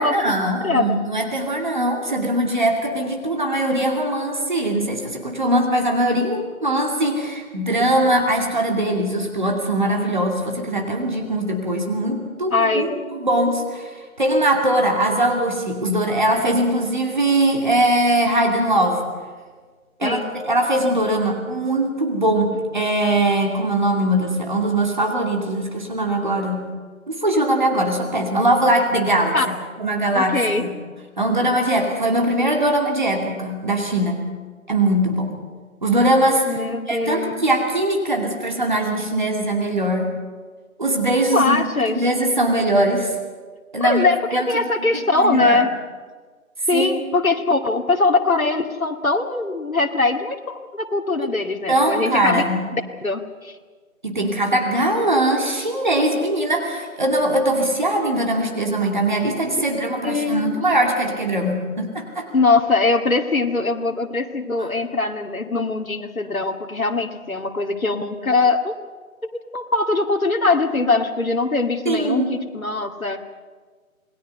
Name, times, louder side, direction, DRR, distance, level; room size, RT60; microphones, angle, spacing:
voice 1, 0.0-12.9 13.2-19.0 20.0-26.7 27.1-29.3 29.8-30.7 31.2-34.2 34.7-35.4 35.8-40.1 40.8-41.6 41.9-43.1 43.7-44.0 44.3-44.5 44.9-45.7 46.7-46.9 51.7-52.6 54.0-62.3 71.9-72.3, right 1 dB, 35° right, 1 dB, 2.6 m, -21 dB
voice 2, 0.6-1.0 12.5-12.9 20.0-20.3 29.3-29.5 30.1-30.6 36.5-37.4 41.3-42.0 43.8-45.7 46.7-52.4 53.0-53.5 60.0-60.6 62.3-68.7 69.2-73.2, left 3 dB, 75° left, 3 dB, 2.3 m, -21 dB
27.5 x 20.0 x 5.5 m, 1.5 s
figure-of-eight pair, 170°, 42 cm